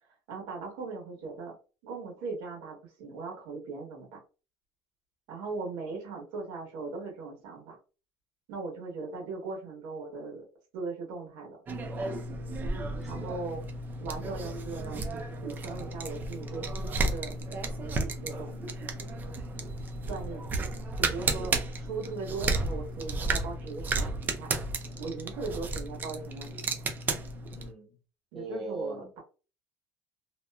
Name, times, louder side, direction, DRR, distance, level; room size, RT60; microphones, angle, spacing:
voice 1, 0.3-1.5 1.8-4.2 5.3-7.8 8.5-10.5 10.7-11.6 13.1-13.6 14.0-17.4 18.2-18.7 20.1-20.5 21.0-24.5 25.0-26.9 28.3-29.2, right 4 dB, 85° right, 1.3 m, -39 dB
sound 1, 11.7-27.7, right 3 dB, 25° right, 0.3 m, -33 dB
voice 2, 12.3-13.4 21.4-21.5 27.5-28.0 28.3-29.1, right 3 dB, ahead, 0.7 m, -42 dB
2.9 x 2.1 x 2.3 m
cardioid pair, 160°, 8 cm